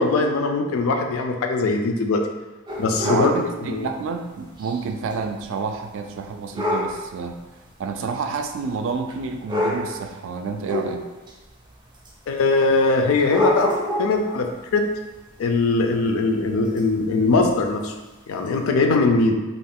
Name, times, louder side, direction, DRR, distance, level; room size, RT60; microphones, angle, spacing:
voice 1, 0.0-2.2 2.8-3.3 3.6-3.9 12.3-14.9 15.4-17.9 18.3-19.4, left 3 dB, 75° left, 4 dB, 0.4 m, -21 dB
sound 1, 2.7-3.4 4.6-4.7 5.1-5.2 6.5-7.0 8.0-8.1 9.1-9.2 9.5-10.0 10.6-11.3 12.1-12.2 13.2-14.3 16.8-16.9 17.5-17.6 18.5-18.6, left 1 dB, 25° right, 0.6 m, -25 dB
voice 2, 3.0-7.4 7.8-11.0, right 5 dB, 65° right, 5 dB, 0.3 m, -29 dB
2.5 x 2.2 x 3.5 m, 1.2 s
head